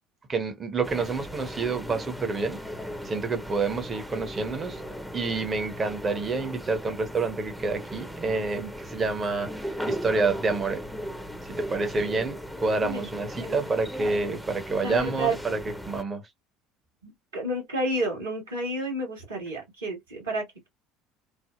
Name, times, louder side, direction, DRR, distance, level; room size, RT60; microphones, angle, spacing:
voice 1, 0.3-2.6 3.0-4.8 5.1-10.8 11.4-15.6 15.8-16.2, right 3 dB, 30° right, 0.8 m, -28 dB
sound 1, 0.8-16.0, equal, ahead, 0.7 m, -37 dB
voice 2, 14.8-15.4 17.0-20.7, right 1 dB, 75° right, 1.5 m, -30 dB
3.4 x 2.0 x 2.3 m
figure-of-eight pair, 65°, 0 cm